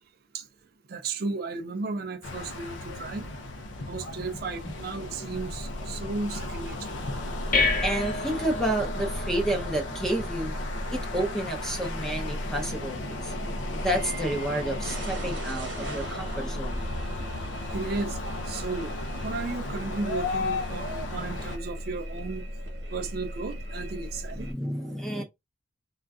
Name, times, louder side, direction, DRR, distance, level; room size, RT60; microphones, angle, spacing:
voice 1, 0.9-3.3 3.9-6.9 17.7-18.2 18.5-18.9 19.2-22.5 22.9-24.5, right 3 dB, 55° right, 0.4 m, -34 dB
sound 1, 2.2-21.6, left 2 dB, 85° left, 0.6 m, -36 dB
sound 2, 5.3-24.5, equal, 80° right, 1.0 m, -38 dB
sound 3, 7.1-17.7, left 2 dB, 50° left, 0.7 m, -35 dB
voice 2, 7.8-10.6 10.9-13.3 13.7-16.9 24.3-25.2, right 1 dB, 5° left, 0.7 m, -30 dB
3.8 x 2.3 x 2.3 m
head